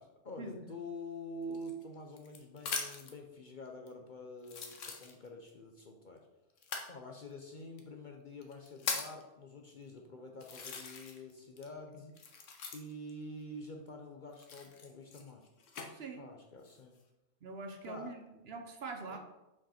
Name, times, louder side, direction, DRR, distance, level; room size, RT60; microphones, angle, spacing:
voice 1, 0.0-6.3 6.9-12.1 12.7-15.5 16.2-16.9 17.8-18.1 19.1-19.2, left 1 dB, 45° left, 3 dB, 0.7 m, -47 dB
sound 1, 1.5-3.2 3.9-4.0 4.4-5.5 6.6-6.9 7.8-7.9 8.4-9.2 9.9-10.0 10.4-11.3 11.6-13.1 14.3-15.9 16.5-17.0, left 5 dB, 75° left, 1.3 m, -41 dB
voice 2, 15.9-16.2 17.4-19.2, right 3 dB, 55° right, 4 dB, 1.0 m, -44 dB
6.1 x 5.1 x 4.3 m, 0.95 s
omnidirectional pair, 1.3 m